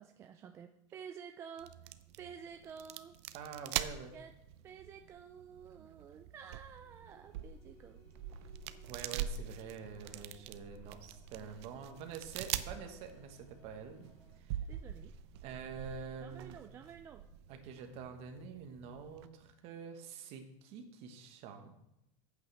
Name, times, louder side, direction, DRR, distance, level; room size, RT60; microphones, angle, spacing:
voice 1, 0.0-3.2 3.7-4.3 4.6-8.0 14.7-15.1 16.2-17.2, right 7 dB, 15° right, 6 dB, 0.3 m, -51 dB
sound 1, 1.6-19.3, right 10 dB, 55° right, 0.6 m, -44 dB
voice 2, 3.3-4.2 8.9-14.1 14.3-14.6 15.4-16.6 17.5-21.8, right 6 dB, 40° right, 5 dB, 1.4 m, -47 dB
sound 2, 6.7-14.4, left 3 dB, 55° left, 3.6 m, -66 dB
14.0 x 8.5 x 3.4 m, 0.86 s
supercardioid pair, 165°, 16 cm